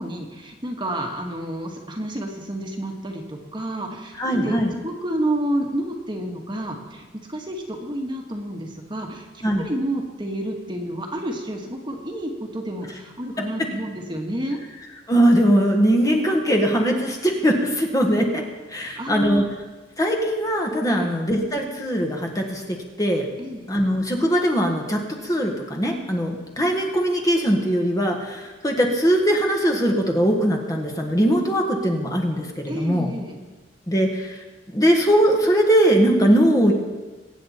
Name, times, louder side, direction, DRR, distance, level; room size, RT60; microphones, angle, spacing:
voice 1, 0.0-4.6 4.8-9.3 9.6-14.6 19.0-19.5 20.9-21.1 23.4-23.7 32.7-33.4, right 1 dB, 25° right, 1 dB, 1.6 m, -29 dB
voice 2, 4.2-4.7 9.4-9.7 13.4-13.5 15.1-18.4 18.7-19.4 20.0-23.2 23.7-33.1 33.9-34.4 34.7-36.7, equal, 20° left, 1 dB, 1.6 m, -20 dB
23.0 x 9.0 x 4.3 m, 1.2 s
head